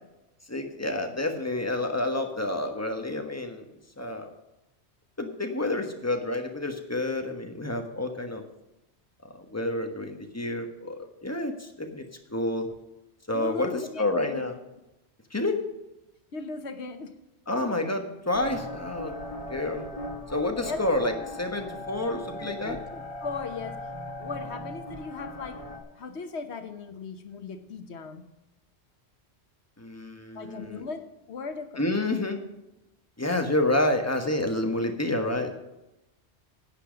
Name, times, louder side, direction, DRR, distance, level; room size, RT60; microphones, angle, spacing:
voice 1, 0.5-3.6 4.0-4.3 5.2-8.4 9.3-12.0 12.3-12.7 13.3-14.6 15.3-15.6 17.5-19.1 19.5-19.8 20.3-22.8 29.8-30.9 31.8-32.4 33.2-35.5, left 2 dB, 15° left, 4 dB, 1.3 m, -29 dB
voice 2, 13.3-14.4 16.3-17.1 20.6-21.3 22.4-23.8 24.2-25.6 25.9-28.3 30.3-31.0 31.3-31.7, left 4 dB, 75° left, 8 dB, 1.4 m, -38 dB
sound 1, 18.3-25.8, left 1 dB, 30° left, 1.7 m, -39 dB
11.5 x 9.0 x 5.2 m, 0.95 s
omnidirectional pair, 1.1 m